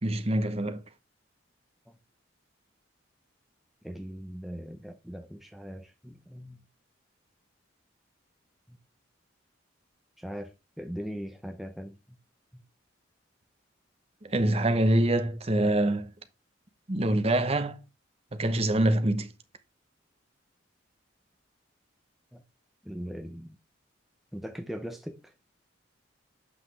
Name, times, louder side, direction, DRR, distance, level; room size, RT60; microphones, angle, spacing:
voice 1, 0.0-0.8 14.2-16.1 16.9-17.8 18.3-19.3, right 1 dB, 30° right, 0.8 m, -25 dB
voice 2, 3.8-6.6 8.7-8.8 10.2-12.0 22.3-22.4 22.8-23.6 24.3-25.3, equal, ahead, 0.5 m, -40 dB
7.9 x 5.7 x 3.3 m
head